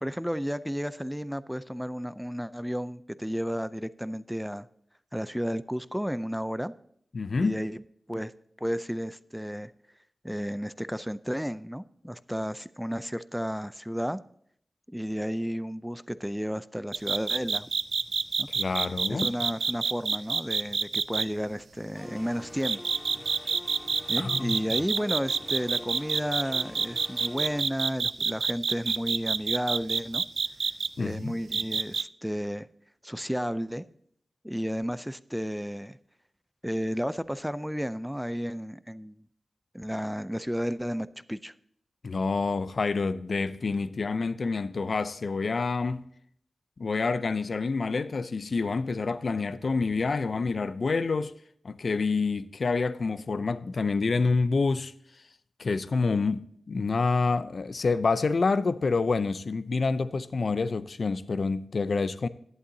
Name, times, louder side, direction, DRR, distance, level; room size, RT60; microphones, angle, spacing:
voice 1, 0.0-4.7 5.1-6.7 7.4-7.8 8.1-8.3 8.6-9.7 10.2-14.2 14.9-17.7 18.4-18.5 19.1-22.8 24.1-30.2 31.0-32.7 33.0-33.8 34.4-36.0 36.6-39.2 39.7-41.5, equal, ahead, 0.4 m, -32 dB
voice 2, 7.1-7.6 18.5-19.3 24.2-24.6 31.0-31.4 42.0-46.0 46.8-51.3 51.6-54.9 55.6-62.3, left 4 dB, 65° left, 0.5 m, -27 dB
sound 1, 16.9-21.2 22.6-30.9 31.5-32.0, right 5 dB, 85° right, 0.3 m, -27 dB
sound 2, 21.9-27.6, left 1 dB, 25° left, 2.3 m, -46 dB
11.5 x 11.0 x 2.7 m
wide cardioid pair, 80°, 0 cm